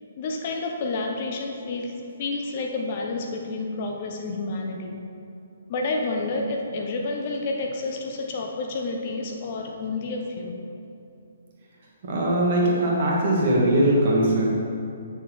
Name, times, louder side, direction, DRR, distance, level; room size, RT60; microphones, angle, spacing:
voice 1, 0.2-4.9 5.7-10.6, left 3 dB, 40° left, 2 dB, 0.7 m, -29 dB
voice 2, 12.1-14.5, right 1 dB, 45° right, -4 dB, 1.8 m, -20 dB
8.5 x 6.3 x 3.5 m, 2.6 s
figure-of-eight pair, 130°, 0 cm